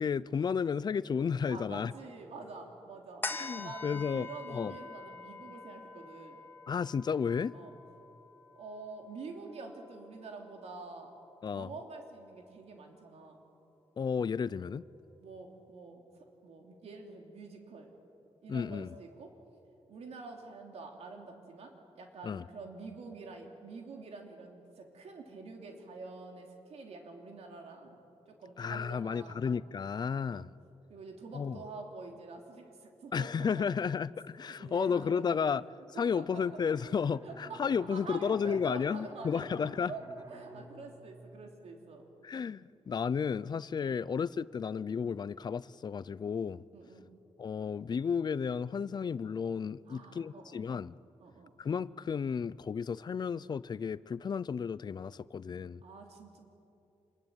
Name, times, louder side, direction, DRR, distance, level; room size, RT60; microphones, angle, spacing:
voice 1, 0.0-1.9 3.3-4.7 6.7-7.6 11.4-11.7 14.0-14.9 18.5-19.0 22.2-22.4 28.6-30.5 31.3-31.6 33.1-35.6 36.0-39.9 42.2-46.6 47.4-51.0 51.6-55.8, left 6 dB, 40° left, 0.5 m, -33 dB
voice 2, 1.5-3.3 3.5-6.4 7.5-7.7 8.5-11.1 11.5-13.4 15.2-17.9 18.4-19.3 19.9-28.0 28.4-29.4 30.2-30.5 30.9-33.3 33.6-33.8 34.5-35.6 35.9-36.4 37.2-37.6 37.9-39.4 39.9-42.1 43.8-44.0 46.7-47.1 49.9-50.6 51.2-51.5 55.8-56.4, right 3 dB, 75° right, 3.2 m, -47 dB
sound 1, 3.2-10.0 10.4-10.5, left 3 dB, 20° left, 2.3 m, -45 dB
Bowed string instrument, 36.3-41.9, right 1 dB, 30° right, 4.4 m, -52 dB
28.0 x 21.0 x 9.0 m
wide cardioid pair, 140°, 11 cm